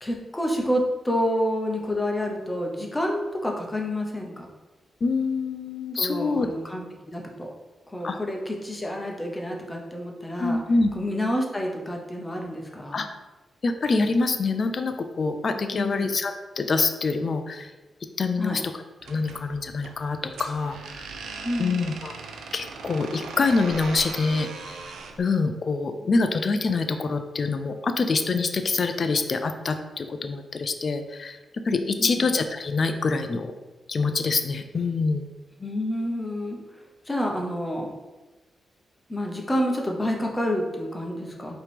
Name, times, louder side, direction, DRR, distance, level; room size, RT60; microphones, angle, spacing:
voice 1, 0.0-4.5 6.0-7.5 7.9-10.6 10.9-13.1 15.7-16.1 18.4-18.6 21.4-21.9 32.0-32.3 35.6-36.6 37.1-37.9 39.1-41.5, equal, 15° left, 0 dB, 0.9 m, -28 dB
voice 2, 5.0-6.5 8.0-8.2 10.4-10.9 12.9-13.1 13.6-17.7 18.2-21.1 21.6-22.1 22.5-24.9 25.2-33.5 33.9-35.3, left 4 dB, 50° left, 7 dB, 0.4 m, -25 dB
sound 1, 19.0-25.2, right 4 dB, 90° right, 0.4 m, -39 dB
4.8 x 3.0 x 3.4 m, 1.2 s
cardioid pair, 80°, 0 cm